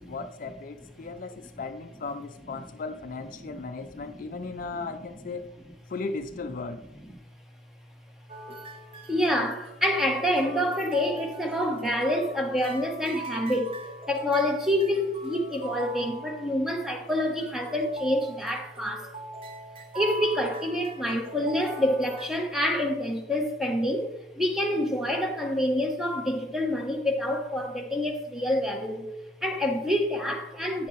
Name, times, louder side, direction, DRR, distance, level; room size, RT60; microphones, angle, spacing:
voice 1, 0.0-5.5 5.9-6.8, left 4 dB, 45° left, 0.4 m, -36 dB
voice 2, 3.4-4.5 4.8-4.9 7.1-7.2 9.1-13.7 14.1-19.1 19.9-29.1 29.4-30.9, left 1 dB, ahead, 1.0 m, -27 dB
sound 1, 8.3-22.3, right 2 dB, 30° right, 0.8 m, -42 dB
9.0 x 6.8 x 3.1 m
head